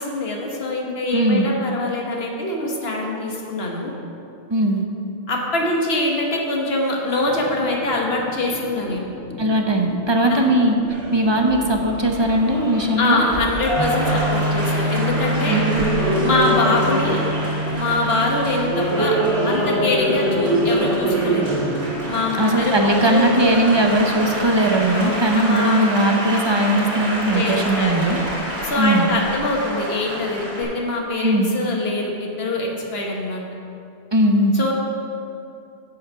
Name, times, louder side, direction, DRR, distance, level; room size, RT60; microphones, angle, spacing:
voice 1, 0.0-3.9 5.3-9.0 10.3-10.5 13.0-15.5 16.2-17.2 17.7-19.2 19.4-21.4 22.1-23.3 24.9-25.9 27.3-27.9 28.6-33.4 34.5-34.7, left 2 dB, 60° left, -1 dB, 1.5 m, -24 dB
voice 2, 1.1-1.5 4.5-4.8 9.4-10.8 11.1-13.2 15.5-15.6 22.4-28.2 28.8-29.1 31.2-31.5 34.1-34.5, right 1 dB, 30° right, 2 dB, 0.6 m, -19 dB
sound 1, 7.2-24.3, left 1 dB, 5° left, 1.0 m, -38 dB
Applause, 10.9-30.6, right 1 dB, 85° right, 3.0 m, -25 dB
sound 2, 13.8-25.8, right 1 dB, 20° left, 1.7 m, -29 dB
8.4 x 7.4 x 5.6 m, 2.6 s
omnidirectional pair, 1.2 m